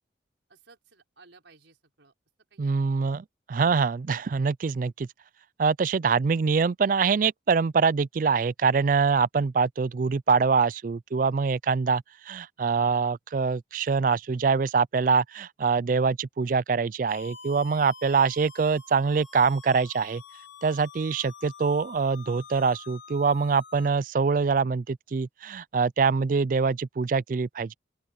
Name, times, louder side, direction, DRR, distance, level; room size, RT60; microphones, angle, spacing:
voice 1, 0.5-2.1 2.5-2.9, right 4 dB, 85° right, 4.7 m, -57 dB
voice 2, 2.6-5.1 5.6-20.2 20.6-27.7, right 5 dB, 45° right, 0.3 m, -24 dB
sound 1, 17.1-23.9, left 5 dB, 85° left, 3.8 m, -47 dB
open air
head